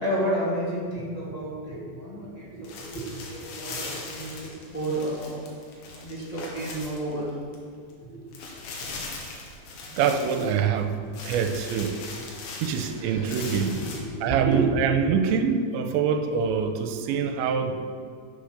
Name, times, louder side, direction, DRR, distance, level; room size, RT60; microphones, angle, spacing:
voice 1, 0.0-5.5 6.0-7.3 8.0-8.2 10.4-10.5 12.4-12.6 12.9-14.6, right 1 dB, 30° left, -7 dB, 0.7 m, -31 dB
sound 1, 2.6-7.6 7.9-8.0 8.3-10.8 11.1-14.0, left 3 dB, 75° left, 3.8 m, -40 dB
voice 2, 9.9-12.0 12.6-13.8 14.2-17.9, right 7 dB, 90° right, 7 dB, 3.0 m, -25 dB
10.5 x 8.3 x 6.7 m, 2.1 s
omnidirectional pair, 5.2 m